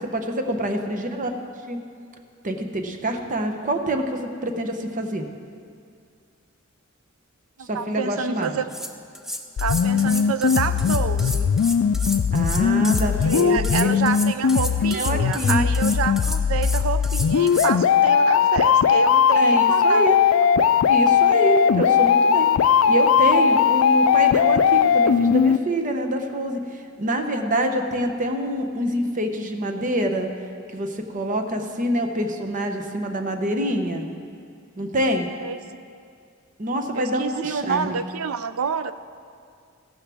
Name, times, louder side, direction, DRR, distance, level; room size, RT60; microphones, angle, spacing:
voice 1, 0.0-1.3 1.7-1.8 2.4-5.3 7.6-8.5 12.3-13.7 14.9-15.7 19.4-20.2 20.9-22.5 22.9-30.3 30.7-34.1 34.8-35.3 36.6-38.0, equal, 40° right, 5 dB, 0.9 m, -26 dB
voice 2, 7.6-8.7 9.6-11.5 13.2-20.3 35.4-35.9 36.9-38.9, right 6 dB, 80° right, 12 dB, 0.5 m, -28 dB
sound 1, 8.4-8.5 8.7-17.7, equal, ahead, 0.5 m, -32 dB
sound 2, 9.6-25.6, left 7 dB, 70° left, 0.3 m, -19 dB
15.0 x 12.0 x 3.5 m, 2.3 s
head